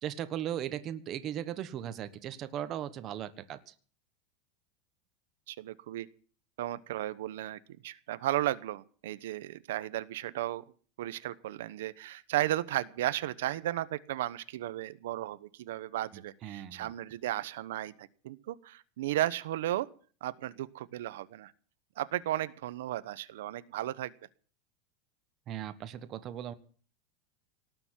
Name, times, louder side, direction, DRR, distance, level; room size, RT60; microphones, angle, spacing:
voice 1, 0.0-3.7 16.1-16.9 25.5-26.5, right 11 dB, 30° right, 11 dB, 1.2 m, -38 dB
voice 2, 5.5-6.1 6.6-10.6 11.0-19.9 20.2-21.5 22.0-24.1, right 14 dB, 85° right, 15 dB, 1.0 m, -34 dB
18.5 x 7.0 x 10.0 m, 0.43 s
supercardioid pair, 165°, 0 cm